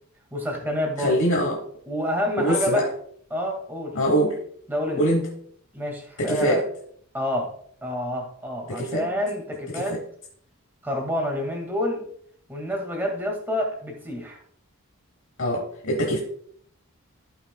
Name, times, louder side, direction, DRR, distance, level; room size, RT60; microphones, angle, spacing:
voice 1, 0.3-1.2 1.9-2.9 3.3-4.0 4.7-5.0 5.7-6.6 7.1-7.5 7.8-10.0 10.8-12.1 12.5-14.4, left 1 dB, 10° right, 1 dB, 1.9 m, -28 dB
voice 2, 1.0-1.6 2.4-2.9 3.9-4.4 5.0-5.3 6.2-6.6 8.7-9.1 9.7-10.0 15.4-16.2, equal, 60° left, 1 dB, 1.1 m, -23 dB
15.0 x 5.7 x 2.3 m, 0.62 s
head